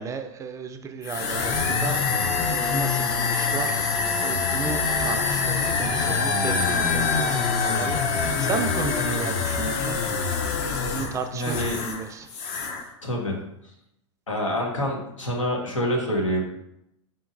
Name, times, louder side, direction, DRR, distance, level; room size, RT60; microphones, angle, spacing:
voice 1, 0.0-3.8 4.2-10.0 10.6-12.4, right 5 dB, 20° right, 7 dB, 0.3 m, -34 dB
sound 1, 1.0-12.0 12.3-12.8, left 5 dB, 45° left, 0.6 m, -25 dB
voice 2, 11.3-11.8 13.0-13.4 14.3-16.4, equal, 90° left, 0 dB, 1.0 m, -26 dB
4.4 x 3.9 x 2.5 m, 0.82 s
hypercardioid pair, 100°, 16 cm